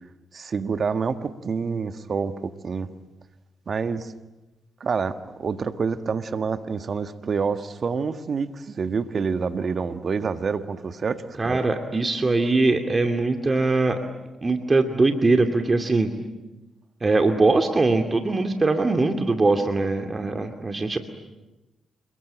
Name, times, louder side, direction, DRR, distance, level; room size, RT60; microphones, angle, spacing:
voice 1, 0.3-2.9 3.7-4.1 4.8-11.6, right 5 dB, 50° right, 10 dB, 1.6 m, -27 dB
voice 2, 11.4-14.0 14.4-16.1 17.0-21.0, right 3 dB, 35° right, 5 dB, 2.5 m, -21 dB
28.5 x 22.0 x 8.9 m, 1.1 s
hypercardioid pair, 40°, 0 cm